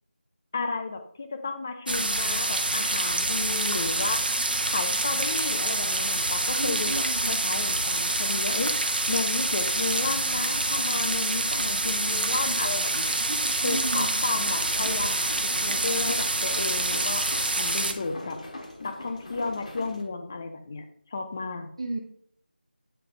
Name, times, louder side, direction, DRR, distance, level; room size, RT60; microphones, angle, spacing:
voice 1, 0.5-4.2 4.7-8.7 9.1-13.2 13.6-17.2 17.6-18.4 18.8-20.8 21.1-21.7, left 4 dB, 15° left, 6 dB, 0.4 m, -32 dB
sound 1, 1.9-17.9, right 2 dB, 55° right, 0.9 m, -27 dB
voice 2, 6.6-7.3 13.3-14.2 21.8-22.0, right 2 dB, 35° right, 4 dB, 0.6 m, -33 dB
sound 2, 14.2-20.0, left 2 dB, 40° left, 1.2 m, -42 dB
8.8 x 3.3 x 3.6 m, 0.66 s
figure-of-eight pair, 170°, 6 cm